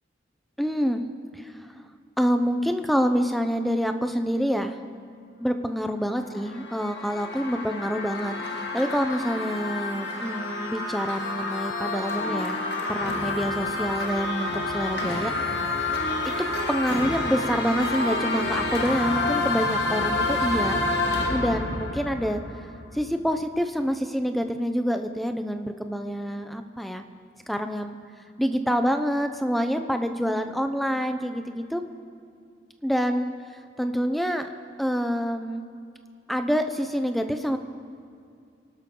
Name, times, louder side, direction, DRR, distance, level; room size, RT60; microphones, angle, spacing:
voice 1, 0.6-1.0 1.3-1.5 2.2-4.8 5.4-12.6 12.9-15.3 16.7-20.8 21.3-22.4 22.9-27.0 27.5-28.0 28.4-31.8 32.8-33.3 33.8-34.5 34.8-35.6 36.3-37.6, equal, ahead, 7 dB, 0.7 m, -27 dB
sound 1, 6.1-23.1, left 2 dB, 65° left, 1.8 m, -28 dB
27.5 x 12.0 x 3.9 m, 2.4 s
head